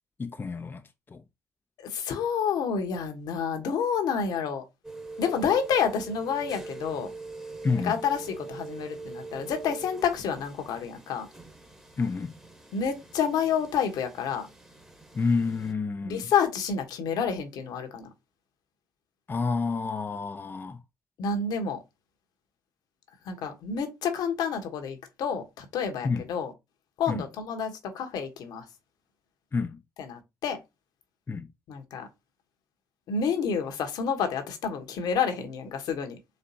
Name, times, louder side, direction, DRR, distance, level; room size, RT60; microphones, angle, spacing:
voice 1, 0.2-0.8 1.1-1.2 7.6-8.0 12.0-12.3 15.1-16.3 19.3-20.8 26.0-26.2 27.1-27.2 29.5-29.8 31.3-31.5, left 4 dB, 30° left, 0.5 m, -29 dB
voice 2, 1.8-4.6 5.2-7.1 7.8-11.3 12.7-14.5 16.0-18.1 21.2-21.8 23.3-26.5 27.0-28.6 30.0-30.6 31.7-32.1 33.1-36.2, left 6 dB, 65° left, 1.1 m, -29 dB
sound 1, 4.8-15.7, right 3 dB, 10° right, 1.2 m, -43 dB
4.3 x 3.3 x 2.7 m
hypercardioid pair, 50°, 7 cm